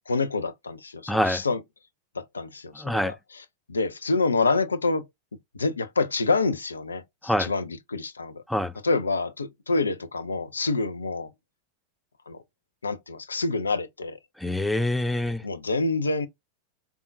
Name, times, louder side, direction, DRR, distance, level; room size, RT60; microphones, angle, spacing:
voice 1, 0.0-1.6 2.2-5.0 5.5-8.4 8.8-11.3 12.3-12.4 12.8-14.2 15.4-16.3, left 3 dB, 75° left, 0.4 m, -27 dB
voice 2, 1.1-1.4 2.8-3.1 7.2-7.5 8.5-8.7 14.4-15.4, left 1 dB, 5° left, 0.4 m, -25 dB
3.5 x 2.3 x 2.5 m
figure-of-eight pair, 90°, 0 cm